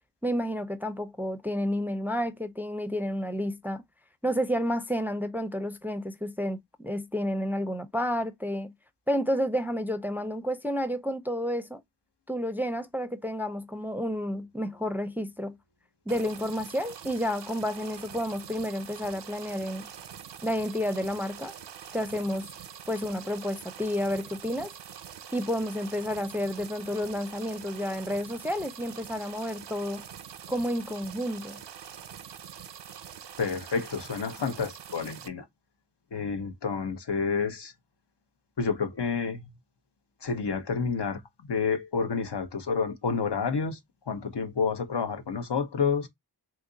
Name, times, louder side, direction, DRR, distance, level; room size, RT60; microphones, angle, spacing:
voice 1, 0.2-3.8 4.2-8.7 9.1-11.8 12.3-15.6 16.1-19.9 20.4-21.5 21.9-22.5 22.9-24.7 25.3-30.0 30.5-31.6, equal, 5° right, 0.4 m, -30 dB
sound 1, 16.1-35.3, right 8 dB, 85° right, 0.5 m, -45 dB
voice 2, 33.4-35.4 36.1-37.7 38.6-39.4 40.2-43.8 44.1-46.1, left 5 dB, 75° left, 0.8 m, -29 dB
2.9 x 2.4 x 3.8 m
wide cardioid pair, 40°, 42 cm